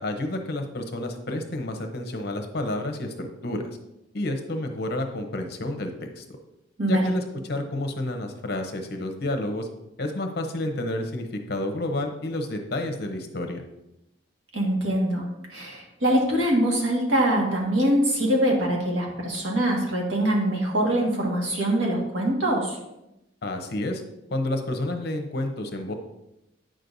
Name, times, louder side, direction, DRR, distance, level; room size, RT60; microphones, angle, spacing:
voice 1, 0.0-3.8 4.1-6.2 6.9-9.7 10.0-13.6 23.4-24.0 24.3-25.9, left 1 dB, 55° left, 5 dB, 0.8 m, -30 dB
voice 2, 14.5-22.8, right 1 dB, 70° right, -1 dB, 1.8 m, -23 dB
9.0 x 6.4 x 2.7 m, 0.89 s
head